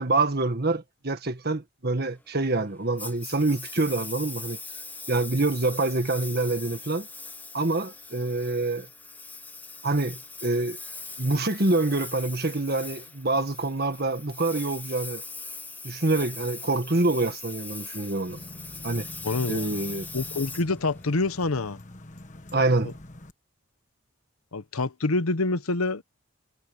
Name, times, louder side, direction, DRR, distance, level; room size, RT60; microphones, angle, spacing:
voice 1, 0.0-4.6 5.1-7.1 7.5-8.9 9.8-10.8 11.2-15.2 15.8-18.4 18.8-19.1 19.5-20.1 22.5-22.9, right 2 dB, 45° right, 1.7 m, -26 dB
Engine, 3.0-21.4, left 3 dB, 10° left, 0.8 m, -41 dB
sound 1, 18.3-23.3, left 1 dB, 35° left, 1.5 m, -45 dB
voice 2, 19.2-19.7 20.1-21.8 22.8-22.9 24.5-26.0, left 3 dB, 85° left, 1.0 m, -26 dB
head